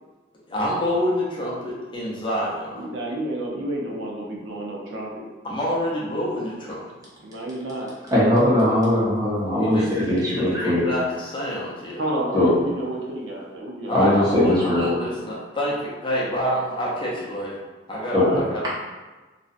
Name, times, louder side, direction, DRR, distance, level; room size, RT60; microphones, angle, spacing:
voice 1, 0.5-2.9 5.4-6.8 9.5-12.0 13.9-17.6 17.9-18.8, equal, 25° left, -5 dB, 0.4 m, -27 dB
voice 2, 2.8-5.3 7.2-7.9 12.0-14.2 18.1-18.4, right 1 dB, 85° right, -3 dB, 0.5 m, -30 dB
voice 3, 8.1-10.8 12.3-12.5 13.9-14.9 18.1-18.4, left 1 dB, 20° right, -8 dB, 0.7 m, -20 dB
2.6 x 2.1 x 2.4 m, 1.2 s
head